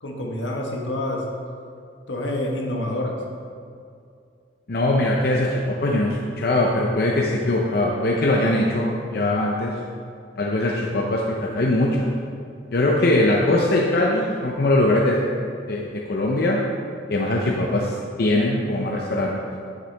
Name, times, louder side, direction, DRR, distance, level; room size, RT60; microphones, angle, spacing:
voice 1, 0.0-1.2 2.1-3.2 12.9-13.1, left 1 dB, 80° left, 0 dB, 1.2 m, -27 dB
voice 2, 4.7-9.7 10.4-12.1 12.7-15.2 15.7-16.6 17.1-19.3, left 1 dB, 55° left, -1 dB, 0.6 m, -21 dB
9.7 x 6.6 x 3.4 m, 2.4 s
head